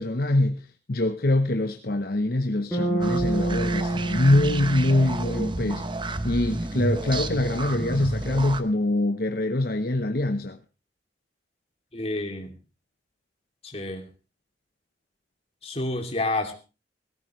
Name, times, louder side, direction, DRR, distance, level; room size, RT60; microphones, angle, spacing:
voice 1, 0.0-5.9 6.2-10.6, left 1 dB, 55° left, 0.9 m, -24 dB
Bass guitar, 2.7-6.8, right 2 dB, 10° left, 5.3 m, -29 dB
sound 1, 3.0-8.6, right 2 dB, 25° right, 0.9 m, -31 dB
voice 2, 11.9-12.5 13.6-14.1 15.6-16.5, left 2 dB, 35° left, 2.7 m, -29 dB
18.0 x 16.0 x 3.1 m
head